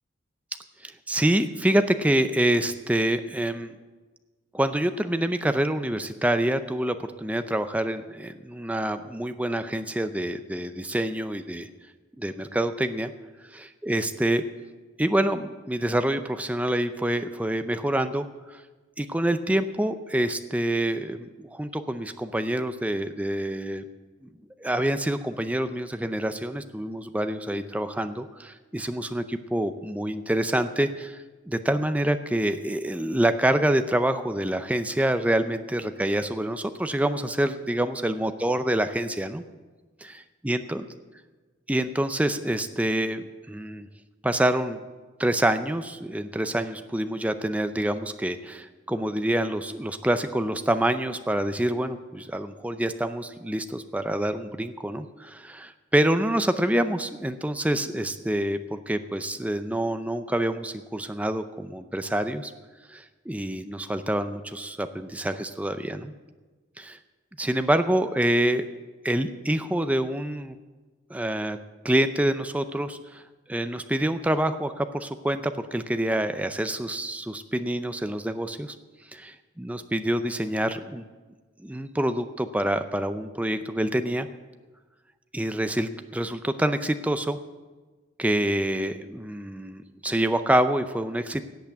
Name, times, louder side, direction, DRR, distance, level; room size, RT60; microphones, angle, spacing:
voice 1, 0.8-3.7 4.5-11.7 12.2-13.1 13.5-14.4 15.0-18.6 19.0-23.8 24.2-24.3 24.6-31.2 31.4-39.4 40.0-40.8 41.7-43.9 44.2-44.8 45.2-62.5 62.9-66.1 66.8-67.0 67.4-68.7 69.0-70.6 71.1-71.6 71.8-73.2 73.5-78.8 79.1-81.0 81.6-84.3 85.3-87.4 88.2-91.4, right 1 dB, 5° right, 9 dB, 0.5 m, -26 dB
17.0 x 5.9 x 8.4 m, 1.3 s
head